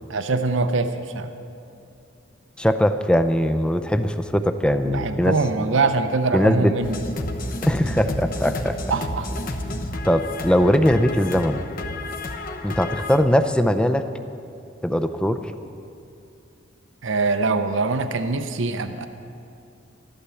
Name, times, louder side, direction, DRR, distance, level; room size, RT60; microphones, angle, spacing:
voice 1, 0.1-1.3 4.8-7.0 8.9-9.3 17.0-19.1, right 3 dB, 70° right, 8 dB, 0.7 m, -23 dB
voice 2, 2.6-5.3 6.3-6.7 7.7-8.8 10.0-11.6 12.6-14.1 14.8-15.5, equal, 5° left, 8 dB, 0.4 m, -20 dB
sound 1, 6.8-13.2, left 1 dB, 45° left, 0.9 m, -31 dB
13.5 x 11.5 x 7.0 m, 2.7 s
head